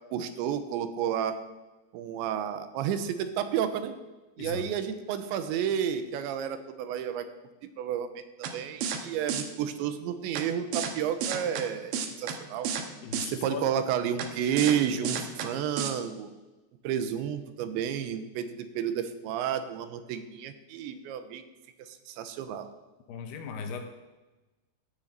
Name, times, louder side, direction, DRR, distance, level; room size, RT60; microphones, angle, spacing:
voice 1, 0.1-1.4 1.9-3.9 4.4-7.3 7.6-12.7 13.3-16.3 16.8-21.4 21.8-22.7, right 9 dB, 90° right, 10 dB, 3.2 m, -31 dB
sound 1, 8.4-8.5 8.8-9.0 9.3-9.4 10.4-10.5 10.7-10.9 11.2-11.6 11.9-12.4 12.6-12.8 13.1-13.3 14.2-14.3 14.6-14.8 15.0-15.5 15.8-15.9, right 7 dB, 70° right, 2.4 m, -31 dB
voice 2, 13.0-13.7 23.1-23.8, left 6 dB, 70° left, 6 dB, 3.0 m, -38 dB
13.5 x 6.7 x 8.8 m, 1.1 s
omnidirectional pair, 5.2 m